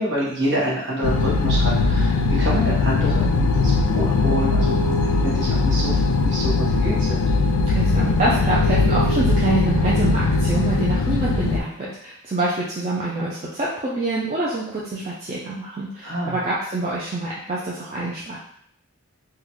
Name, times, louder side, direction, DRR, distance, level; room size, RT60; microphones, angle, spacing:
voice 1, 0.0-7.3 16.0-16.4, equal, 55° right, -6 dB, 1.2 m, -27 dB
sound 1, 1.0-11.6, left 3 dB, 80° left, 0.3 m, -20 dB
voice 2, 7.7-18.4, right 2 dB, 30° right, -6 dB, 0.4 m, -26 dB
3.8 x 2.2 x 3.0 m, 0.67 s
head